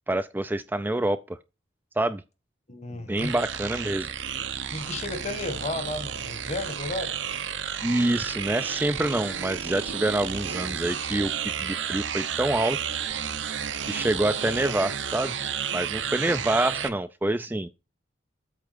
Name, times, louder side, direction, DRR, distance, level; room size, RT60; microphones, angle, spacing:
voice 1, 0.1-1.4 2.0-2.2 2.9-4.1 7.8-12.8 13.9-15.4 15.7-17.7, right 1 dB, 10° right, 0.4 m, -27 dB
voice 2, 2.7-3.3 4.7-7.2, left 2 dB, 40° left, 1.5 m, -33 dB
sound 1, 3.2-16.9, right 8 dB, 80° right, 0.9 m, -32 dB
8.4 x 3.5 x 6.6 m
head